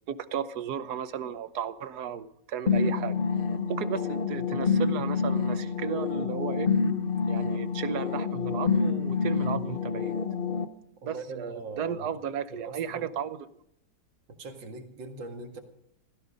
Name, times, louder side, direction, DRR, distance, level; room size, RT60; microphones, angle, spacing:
voice 1, 0.1-3.2 3.7-6.7 7.3-10.2 11.0-13.5, right 8 dB, 65° right, 13 dB, 1.4 m, -34 dB
sound 1, 2.7-10.6, left 5 dB, 40° left, 0.8 m, -27 dB
voice 2, 11.0-13.1 14.3-15.6, right 3 dB, 85° right, 5 dB, 2.7 m, -41 dB
16.0 x 15.5 x 5.2 m, 0.72 s
omnidirectional pair, 2.0 m